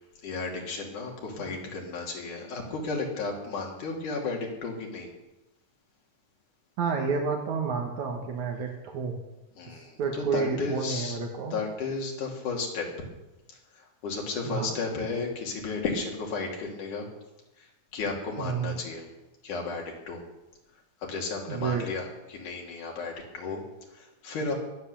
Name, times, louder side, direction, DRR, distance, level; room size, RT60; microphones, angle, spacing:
voice 1, 0.2-5.1 9.6-11.2 11.5-13.1 13.5-17.1 17.6-17.7 17.9-19.0 19.4-20.2 21.0-23.6 23.9-24.5, left 4 dB, 85° left, 0 dB, 4.2 m, -33 dB
voice 2, 6.8-9.1 10.0-11.6 14.5-14.7 18.4-18.7 21.5-21.8, right 5 dB, 75° right, 2 dB, 2.8 m, -30 dB
22.0 x 8.3 x 7.1 m, 0.99 s
omnidirectional pair, 3.5 m